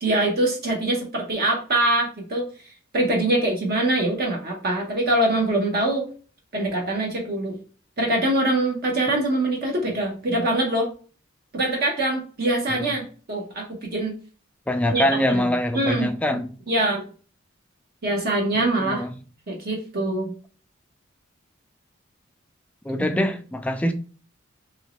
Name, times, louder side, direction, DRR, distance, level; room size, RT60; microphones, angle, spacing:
voice 1, 0.0-2.4 2.9-6.1 6.5-7.6 8.0-10.9 11.5-14.2 14.9-15.4 15.7-16.1 16.7-17.0 18.0-19.0 19.5-20.3 23.1-23.2, right 1 dB, 50° right, 0.7 m, -23 dB
voice 2, 14.7-16.5 18.5-19.1 22.8-23.9, left 1 dB, 5° left, 0.3 m, -24 dB
3.0 x 2.6 x 2.9 m
head